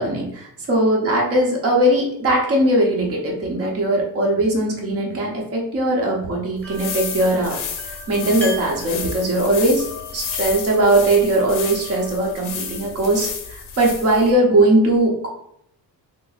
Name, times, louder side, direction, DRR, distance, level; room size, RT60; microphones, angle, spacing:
voice 1, 0.0-7.6 8.1-9.8 10.1-15.3, right 1 dB, 35° right, -1 dB, 0.8 m, -19 dB
sound 1, 6.6-14.3, left 6 dB, 50° left, 0.6 m, -32 dB
sound 2, 6.6-13.5, left 3 dB, 5° left, 0.7 m, -39 dB
3.4 x 2.0 x 4.0 m, 0.72 s
cardioid pair, 155°, 40 cm